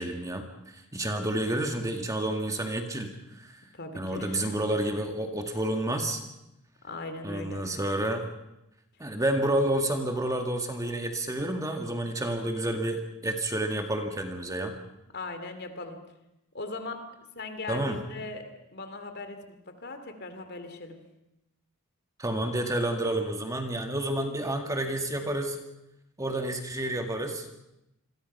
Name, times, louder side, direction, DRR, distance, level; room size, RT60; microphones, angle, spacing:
voice 1, 0.0-3.6 4.0-6.2 7.2-8.3 9.0-14.7 17.7-18.0 22.2-25.6 26.2-27.5, right 1 dB, 15° right, 4 dB, 2.0 m, -30 dB
voice 2, 3.7-4.6 6.8-7.6 15.1-16.0 16.5-17.0 17.3-18.4 18.7-19.4 19.7-21.0, left 3 dB, 50° left, 7 dB, 2.8 m, -39 dB
28.0 x 22.0 x 5.7 m, 0.88 s
head